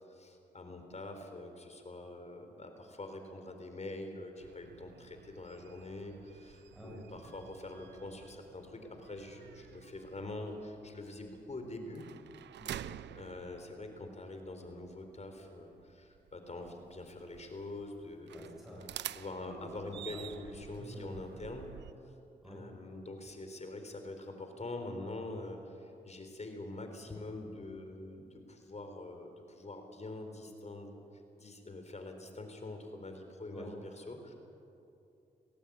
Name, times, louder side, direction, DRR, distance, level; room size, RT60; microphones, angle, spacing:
voice 1, 0.1-12.0 13.1-18.5 19.1-21.7 22.5-31.0 31.4-34.3, left 2 dB, 40° left, 5 dB, 4.0 m, -45 dB
sound 1, 4.4-21.9, right 12 dB, 80° right, 0.5 m, -50 dB
voice 2, 6.7-7.1 12.6-12.9 18.3-18.9 19.3-19.6 20.1-20.3 20.6-21.2 22.4-22.7 33.5-33.7, equal, ahead, -3 dB, 7.3 m, -48 dB
20.0 x 17.5 x 8.7 m, 2.7 s
cardioid pair, 55°, 18 cm